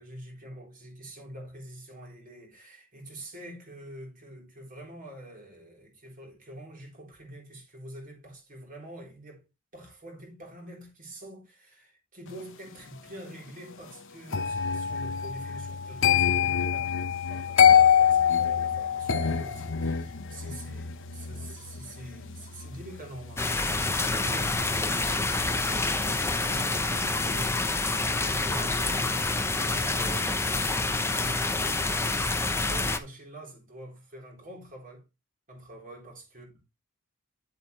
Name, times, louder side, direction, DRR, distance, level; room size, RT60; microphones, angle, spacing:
voice 1, 0.0-9.4 9.7-31.8 32.6-35.0 35.5-36.5, right 1 dB, 40° right, 4.0 m, -45 dB
sound 1, 14.3-25.3 25.6-25.9, left 8 dB, 60° left, 1.0 m, -26 dB
sound 2, 23.4-33.0, left 3 dB, 10° left, 0.8 m, -27 dB
9.3 x 7.9 x 3.3 m
head